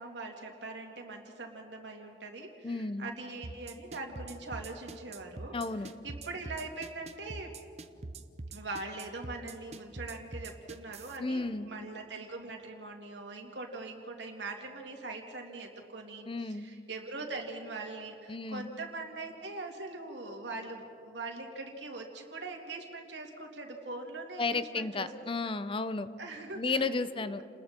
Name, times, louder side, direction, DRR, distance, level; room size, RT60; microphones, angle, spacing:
voice 1, 0.0-7.5 8.5-25.1 26.2-26.9 27.2-27.4, right 3 dB, 80° right, 2 dB, 2.8 m, -42 dB
voice 2, 2.6-3.1 5.5-5.9 11.2-11.7 16.3-16.7 18.3-18.7 24.4-26.1 26.6-27.4, left 3 dB, 30° left, 12 dB, 0.6 m, -33 dB
sound 1, 3.4-11.2, right 3 dB, 35° right, 0.8 m, -43 dB
30.0 x 20.5 x 4.5 m, 2.4 s
head